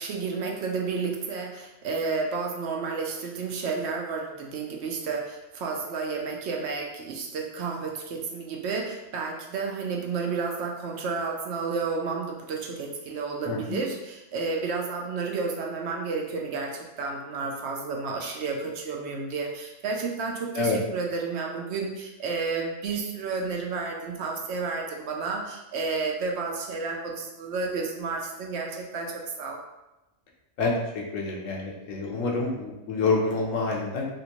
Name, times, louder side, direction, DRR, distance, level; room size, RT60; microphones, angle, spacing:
voice 1, 0.0-29.6, right 4 dB, 65° right, 0 dB, 0.8 m, -31 dB
voice 2, 31.1-34.0, left 3 dB, 90° left, 0 dB, 1.1 m, -27 dB
3.4 x 2.5 x 2.9 m, 0.98 s
omnidirectional pair, 1.3 m